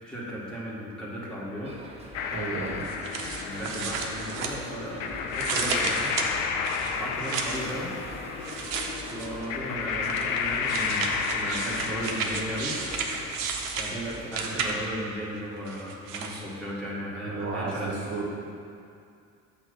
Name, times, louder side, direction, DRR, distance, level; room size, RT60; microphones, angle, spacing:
voice 1, 0.0-1.7 3.4-6.1 7.0-7.9 9.1-12.8 13.7-17.9, equal, ahead, -7 dB, 1.5 m, -35 dB
sound 1, 1.6-14.7, right 1 dB, 15° right, 0.7 m, -46 dB
sound 2, 2.1-13.3, left 6 dB, 70° left, 0.6 m, -32 dB
voice 2, 2.3-2.8 17.2-18.3, right 4 dB, 40° right, -4 dB, 1.2 m, -33 dB
sound 3, 2.8-5.0 5.3-7.7 8.4-9.5 10.0-15.0 15.7-16.4, right 5 dB, 70° right, 0.7 m, -33 dB
6.8 x 3.0 x 5.2 m, 2.4 s
figure-of-eight pair, 60°, 41 cm